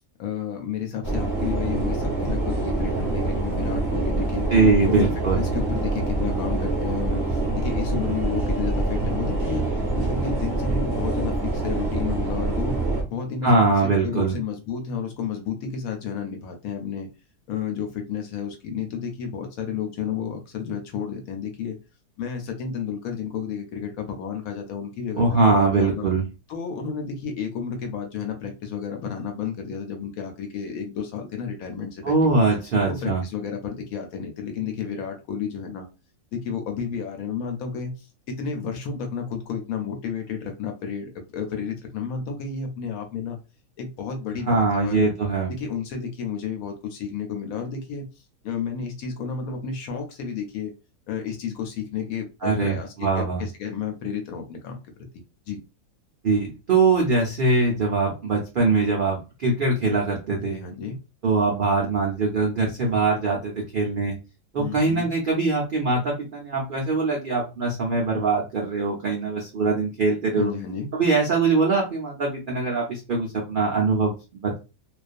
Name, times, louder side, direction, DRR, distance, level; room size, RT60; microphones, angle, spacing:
voice 1, 0.2-4.5 4.8-5.1 5.3-12.8 13.1-17.1 17.5-21.8 22.2-26.1 26.5-32.3 32.8-35.9 36.3-43.4 43.8-45.1 45.5-48.1 48.4-50.7 51.1-55.1 55.5-55.6 60.4-61.0 64.6-65.1 70.4-70.9, left 6 dB, 70° left, 4 dB, 1.0 m, -31 dB
sound 1, 1.0-13.0, right 2 dB, 20° right, 0.6 m, -25 dB
voice 2, 4.5-5.4 13.4-14.3 25.2-26.2 32.0-33.2 44.4-45.5 52.4-53.4 56.2-60.6 61.2-64.1 64.5-70.5 70.9-74.6, right 3 dB, 80° right, -1 dB, 0.4 m, -22 dB
2.4 x 2.3 x 2.4 m, 0.29 s
omnidirectional pair, 1.7 m